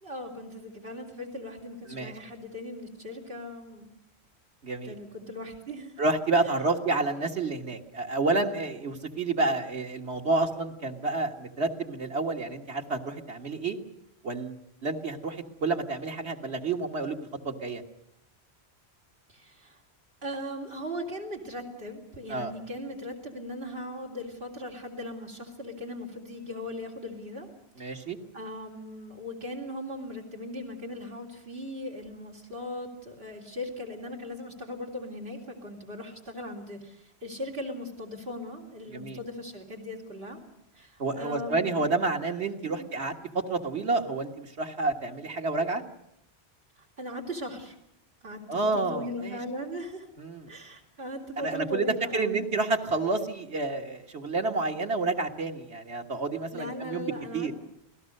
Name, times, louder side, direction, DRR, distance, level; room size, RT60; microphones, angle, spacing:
voice 1, 0.0-3.9 4.8-6.0 19.3-19.8 20.2-27.5 27.8-28.1 28.3-40.4 40.8-41.8 42.6-42.9 47.0-47.8 48.2-50.1 50.5-52.4 56.5-57.5, left 1 dB, 65° right, 3 dB, 3.6 m, -38 dB
voice 2, 4.6-4.9 6.0-13.8 14.2-17.2 17.4-17.8 22.3-22.5 27.8-28.2 38.9-39.2 41.0-45.8 48.5-49.4 50.2-50.5 51.4-57.5, right 3 dB, 90° right, 2 dB, 2.1 m, -29 dB
28.0 x 17.5 x 6.6 m, 0.79 s
omnidirectional pair, 1.1 m